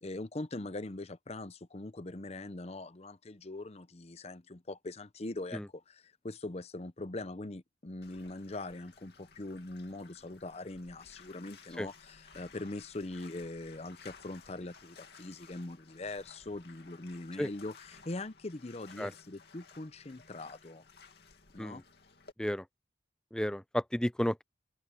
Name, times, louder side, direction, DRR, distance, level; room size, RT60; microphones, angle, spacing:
voice 1, 0.0-20.8 21.5-21.8, left 2 dB, 35° left, 0.7 m, -42 dB
Bathtub (filling or washing), 8.0-22.3, left 5 dB, 60° left, 2.6 m, -57 dB
voice 2, 23.3-24.4, equal, 5° left, 0.4 m, -32 dB
head